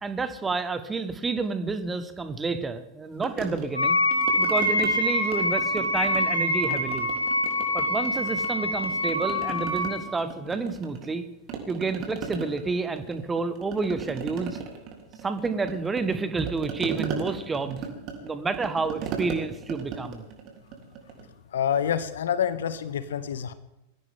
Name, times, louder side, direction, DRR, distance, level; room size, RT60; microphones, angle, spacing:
voice 1, 0.0-4.0 4.4-7.1 7.7-11.3 11.7-14.6 15.2-17.8 18.2-20.2, right 4 dB, 15° right, 11 dB, 1.4 m, -29 dB
sound 1, 3.2-4.9 5.2-6.3 6.6-8.5 8.8-11.2 11.5-21.3, right 6 dB, 40° right, 3.5 m, -37 dB
Wind instrument woodwind instrument, 3.7-10.1, left 1 dB, 85° left, 2.6 m, -25 dB
voice 2, 21.5-23.5, left 8 dB, 65° left, 14 dB, 1.1 m, -27 dB
21.0 x 16.0 x 3.8 m, 0.91 s
figure-of-eight pair, 90°, 0 cm